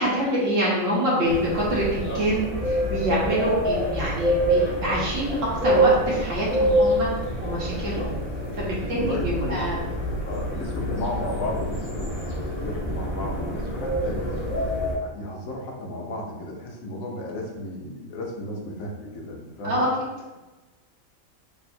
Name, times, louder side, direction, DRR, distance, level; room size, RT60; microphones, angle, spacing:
voice 1, 0.0-2.4 2.7-7.1 7.4-8.1 8.6-9.8 19.6-19.9, right 1 dB, 70° right, -6 dB, 1.5 m, -25 dB
sound 1, 1.3-14.9, right 1 dB, 30° left, 1.0 m, -26 dB
voice 2, 2.0-2.3 7.7-8.1 8.9-9.9 10.3-19.8, left 1 dB, 80° left, -1 dB, 1.2 m, -34 dB
3.7 x 2.0 x 4.3 m, 1.1 s
omnidirectional pair, 1.4 m